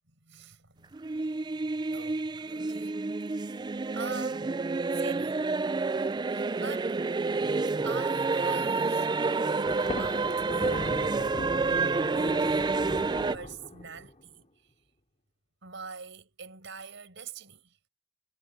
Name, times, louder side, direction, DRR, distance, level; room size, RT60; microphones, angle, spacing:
voice 1, 0.2-3.0 3.3-3.7 3.9-4.5 4.9-5.5 6.3-7.0 7.8-11.1 12.0-12.9 13.3-14.5 15.6-17.8, right 5 dB, 65° right, 5.8 m, -45 dB
sound 1, 0.9-13.4, right 3 dB, 20° right, 0.4 m, -29 dB
Thunder, 9.7-14.2, left 1 dB, 35° left, 3.6 m, -39 dB
head